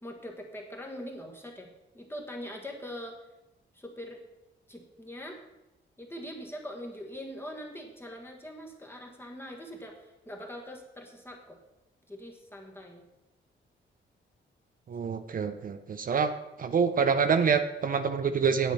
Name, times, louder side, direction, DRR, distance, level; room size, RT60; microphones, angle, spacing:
voice 1, 0.0-3.2 3.7-4.2 4.7-5.4 6.0-11.6 12.1-13.1, equal, 10° left, 1 dB, 1.4 m, -42 dB
voice 2, 14.9-16.3 16.6-18.7, right 6 dB, 45° right, 9 dB, 0.6 m, -26 dB
9.1 x 8.1 x 5.6 m, 0.96 s
wide cardioid pair, 135°, 20 cm